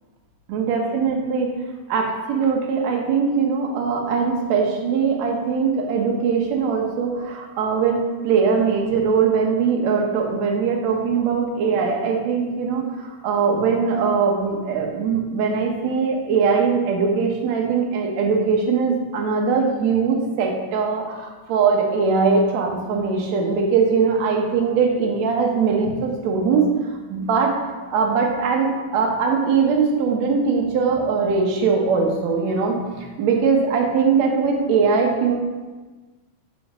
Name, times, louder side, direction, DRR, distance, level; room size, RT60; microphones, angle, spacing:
voice 1, 0.5-1.5 1.9-26.7 27.1-27.5 27.9-35.3, right 5 dB, 65° right, 1 dB, 2.1 m, -21 dB
7.5 x 5.0 x 3.7 m, 1.3 s
omnidirectional pair, 3.6 m